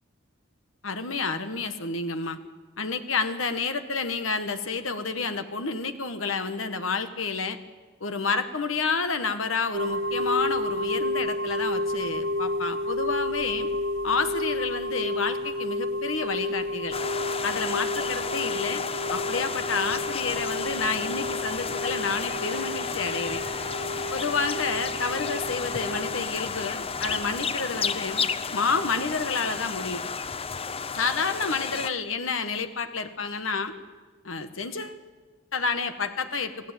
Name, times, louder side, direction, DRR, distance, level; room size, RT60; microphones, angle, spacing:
voice 1, 0.8-2.4 2.8-7.6 8.0-13.7 14.0-16.9 17.4-18.8 19.1-23.4 24.1-28.2 28.5-30.0 30.9-33.7 34.2-35.0 35.5-36.5, left 4 dB, 80° left, 9 dB, 1.5 m, -29 dB
sound 1, 9.7-27.4, left 1 dB, 85° right, 2.5 m, -31 dB
sound 2, 16.9-31.9, left 5 dB, 30° left, 0.8 m, -32 dB
sound 3, 20.7-26.6, left 1 dB, 60° left, 7.1 m, -44 dB
28.0 x 17.0 x 9.1 m, 1.4 s
head